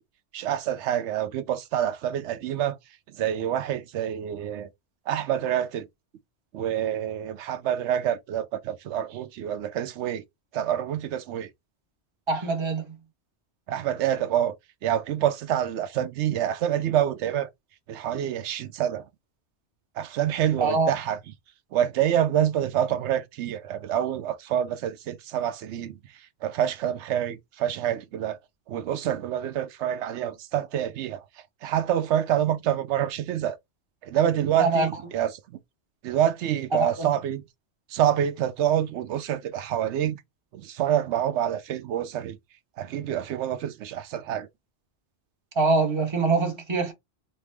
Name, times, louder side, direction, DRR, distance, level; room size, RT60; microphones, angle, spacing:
voice 1, 0.3-2.8 3.2-4.7 5.1-5.9 6.5-10.2 10.5-11.5 13.7-14.5 14.8-17.5 17.9-19.0 20.0-21.2 21.7-26.0 26.4-28.4 28.7-31.2 31.6-33.6 34.0-35.3 36.0-37.4 37.9-40.2 40.5-42.4 42.8-44.5, right 10 dB, 90° right, 0.9 m, -27 dB
voice 2, 12.3-12.8 20.6-20.9 34.6-34.9 36.7-37.1 45.6-46.9, right 3 dB, 25° right, 0.9 m, -24 dB
4.4 x 2.0 x 3.3 m
omnidirectional pair, 1.1 m